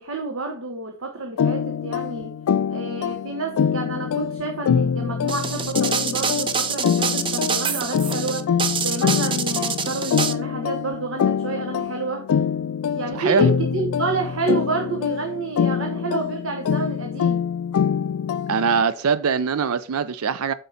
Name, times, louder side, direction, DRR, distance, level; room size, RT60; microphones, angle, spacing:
voice 1, 0.0-2.4 2.7-8.5 8.8-12.3 12.9-17.5, right 3 dB, 65° right, 1.1 m, -29 dB
sound 1, 1.4-18.8, left 7 dB, 85° left, 0.3 m, -25 dB
sound 2, 5.3-10.3, right 6 dB, 25° right, 0.5 m, -26 dB
voice 2, 13.1-13.5 18.5-20.5, right 6 dB, 85° right, 0.5 m, -22 dB
8.0 x 5.2 x 4.2 m
head